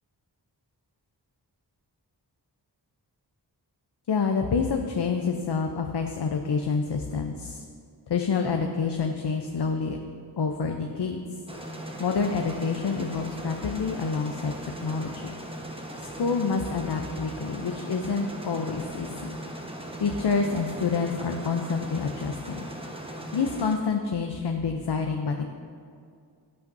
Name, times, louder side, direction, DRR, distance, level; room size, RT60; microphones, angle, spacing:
voice 1, 4.1-7.6 8.1-10.0 10.4-11.2 12.0-15.3 16.0-19.4 20.0-22.7 23.3-25.4, left 5 dB, 65° left, 4 dB, 0.7 m, -28 dB
sound 1, 11.5-23.7, right 1 dB, 10° right, 1.1 m, -38 dB
16.5 x 5.7 x 2.6 m, 2.3 s
wide cardioid pair, 40°, 44 cm